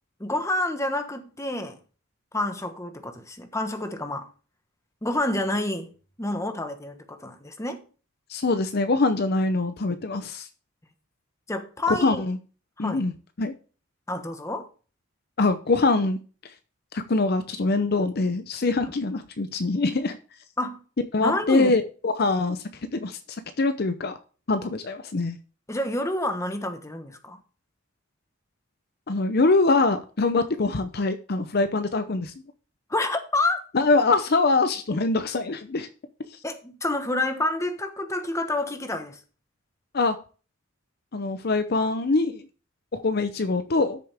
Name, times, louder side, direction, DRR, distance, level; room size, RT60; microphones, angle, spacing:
voice 1, 0.2-1.8 2.3-4.3 5.0-5.9 6.2-7.8 11.5-12.2 12.8-13.0 14.1-14.7 20.6-20.8 21.2-21.8 25.7-27.4 32.9-33.6 36.4-39.2, left 2 dB, 15° left, 1.2 m, -28 dB
voice 2, 8.3-10.5 11.9-12.4 12.8-13.1 13.4-13.5 15.4-16.2 16.9-20.2 21.1-22.6 22.9-24.2 24.5-25.4 29.1-32.3 33.7-35.9 36.3-36.4 39.9-40.1 41.1-42.5 42.9-44.0, left 3 dB, 55° left, 0.7 m, -24 dB
13.0 x 6.8 x 3.5 m
head